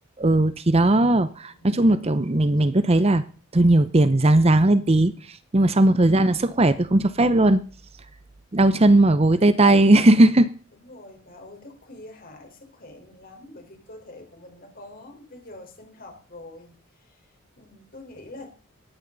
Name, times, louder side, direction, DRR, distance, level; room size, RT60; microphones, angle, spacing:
voice 1, 0.2-3.2 3.5-7.6 8.5-10.5, right 1 dB, 30° right, 13 dB, 0.7 m, -18 dB
voice 2, 10.7-18.5, left 2 dB, 45° left, 3 dB, 4.5 m, -45 dB
18.0 x 14.0 x 4.0 m, 0.39 s
head